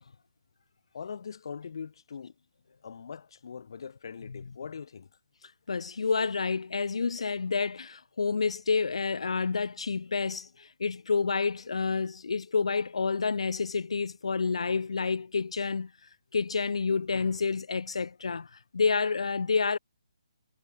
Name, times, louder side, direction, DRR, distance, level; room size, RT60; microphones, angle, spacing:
voice 1, 0.9-2.3 2.8-5.1, left 6 dB, 50° left, 3.8 m, -41 dB
voice 2, 5.7-15.9 16.3-19.8, left 5 dB, 90° left, 0.4 m, -29 dB
hypercardioid pair, 170°, 3 cm